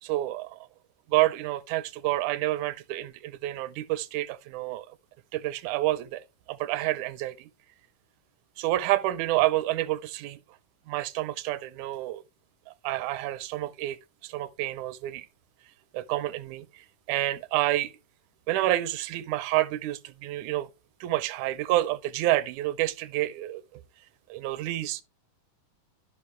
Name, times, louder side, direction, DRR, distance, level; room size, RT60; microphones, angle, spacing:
voice 1, 0.0-0.7 1.1-4.9 5.3-7.5 8.6-10.4 10.9-12.2 12.7-14.0 14.2-15.3 15.9-17.9 18.5-20.7 21.0-23.8 24.3-25.0, right 16 dB, 80° right, 1.8 m, -29 dB
12.5 x 5.2 x 3.1 m
omnidirectional pair, 3.8 m